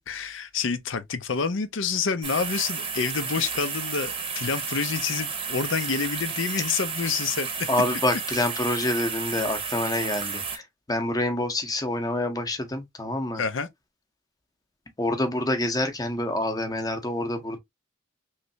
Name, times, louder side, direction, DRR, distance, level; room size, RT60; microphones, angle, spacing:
voice 1, 0.1-7.7 13.3-13.7, left 5 dB, 80° left, 0.6 m, -28 dB
sound 1, 2.2-10.6, right 5 dB, 30° right, 0.8 m, -32 dB
voice 2, 7.7-10.6 10.9-13.4 15.0-17.6, left 1 dB, 20° left, 0.7 m, -27 dB
3.2 x 3.1 x 2.6 m
head